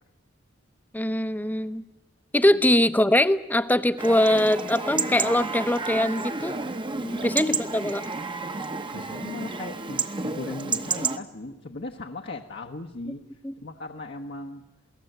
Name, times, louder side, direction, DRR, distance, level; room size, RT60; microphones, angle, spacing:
voice 1, 0.9-1.8 2.3-6.6 7.2-8.0 13.4-13.5, left 1 dB, 10° left, 12 dB, 0.8 m, -22 dB
Chatter / Livestock farm animals working animals / Chirp tweet, 4.0-11.2, right 4 dB, 25° right, 1.0 m, -30 dB
voice 2, 7.0-7.3 8.9-13.2 13.6-14.6, left 2 dB, 60° left, 1 dB, 1.1 m, -38 dB
28.0 x 18.0 x 8.0 m, 1.1 s
head